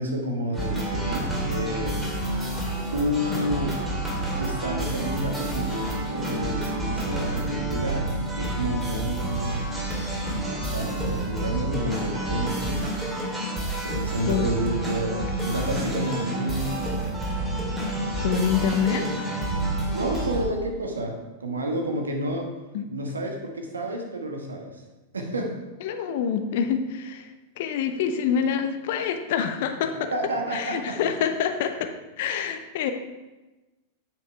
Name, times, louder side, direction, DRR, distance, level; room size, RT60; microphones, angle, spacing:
voice 1, 0.0-2.0 2.9-3.8 4.4-13.0 13.9-17.2 19.9-22.5 22.9-24.8 25.1-25.6 30.1-31.2, right 1 dB, 80° right, 2 dB, 1.4 m, -30 dB
sound 1, 0.5-20.5, right 1 dB, 10° right, 2.7 m, -29 dB
voice 2, 18.2-19.1 22.7-22.8 25.8-27.3 27.6-30.1 30.5-32.9, left 7 dB, 55° left, 7 dB, 0.8 m, -26 dB
9.1 x 5.4 x 4.5 m, 1.1 s
figure-of-eight pair, 95°, 0 cm